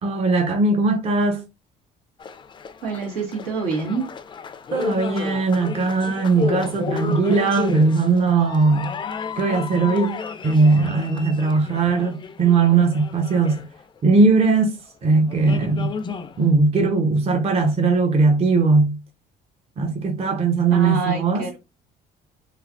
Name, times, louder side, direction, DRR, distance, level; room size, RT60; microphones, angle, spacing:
voice 1, 0.0-1.4 4.7-8.9 9.4-10.2 10.4-13.6 14.0-14.8 15.0-16.0 16.4-19.0 19.8-21.5, right 4 dB, 35° right, 0.6 m, -19 dB
sound 1, 2.2-14.2 14.9-15.0 15.3-16.5, left 5 dB, 30° left, 0.4 m, -32 dB
voice 2, 2.8-4.1 20.7-21.6, right 3 dB, 90° right, 1.6 m, -27 dB
3.2 x 3.2 x 2.5 m
cardioid pair, 110°, 17 cm